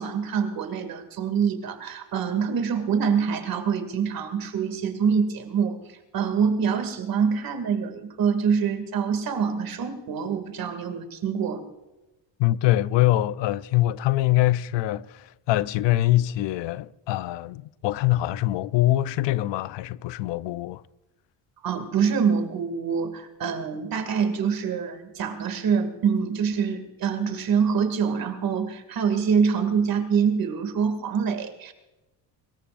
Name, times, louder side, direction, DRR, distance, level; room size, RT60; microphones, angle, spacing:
voice 1, 0.0-11.6 21.6-31.7, right 6 dB, 50° right, 2.5 m, -25 dB
voice 2, 12.4-20.8, left 15 dB, 75° left, 0.7 m, -24 dB
24.5 x 21.5 x 2.6 m
cardioid pair, 165°, 44 cm